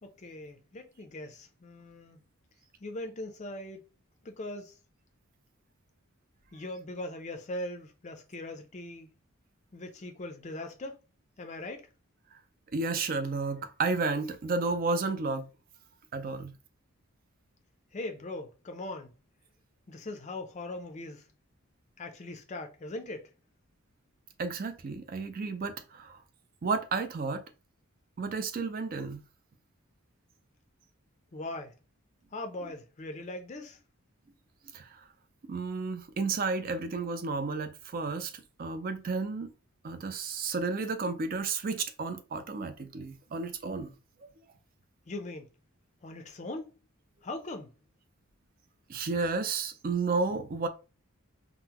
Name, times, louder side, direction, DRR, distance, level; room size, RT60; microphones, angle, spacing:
voice 1, 0.0-2.2 2.8-3.8 4.2-4.7 6.5-9.1 9.7-11.0 11.4-11.9 17.9-19.1 19.9-21.3 22.0-23.3 31.3-31.8 32.3-33.8 45.1-45.5 46.0-46.8 47.2-47.7, left 2 dB, 30° left, 0.4 m, -40 dB
voice 2, 12.7-15.5 16.1-16.5 24.4-26.2 26.6-27.4 28.2-29.2 34.7-35.0 35.5-39.5 39.8-43.9 44.2-44.3 48.9-50.7, right 4 dB, 40° right, 0.4 m, -32 dB
3.7 x 2.0 x 2.8 m
head